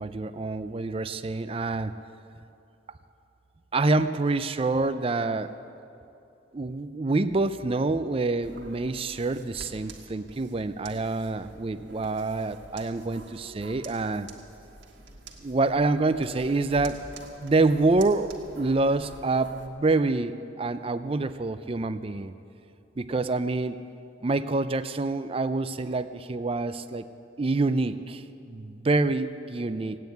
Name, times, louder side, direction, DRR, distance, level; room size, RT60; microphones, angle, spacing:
voice 1, 0.0-1.9 3.7-5.5 6.5-14.3 15.4-17.0 17.4-22.3 23.0-23.8 24.2-27.0 27.4-30.0, right 3 dB, 30° right, 12 dB, 0.4 m, -27 dB
sound 1, 8.4-19.7, right 2 dB, 75° right, 1.7 m, -48 dB
16.5 x 9.2 x 9.3 m, 2.7 s
head